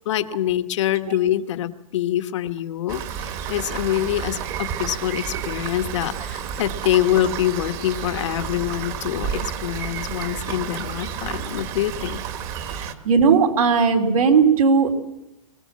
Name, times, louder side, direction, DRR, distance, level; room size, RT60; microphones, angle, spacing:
voice 1, 0.0-12.2, left 12 dB, 55° left, 9 dB, 1.3 m, -25 dB
Rain, 2.9-12.9, right 8 dB, 30° right, 1.4 m, -31 dB
voice 2, 12.7-15.0, right 5 dB, 85° right, 2 dB, 3.2 m, -17 dB
22.0 x 17.5 x 7.5 m, 0.92 s
hypercardioid pair, 150°, 18 cm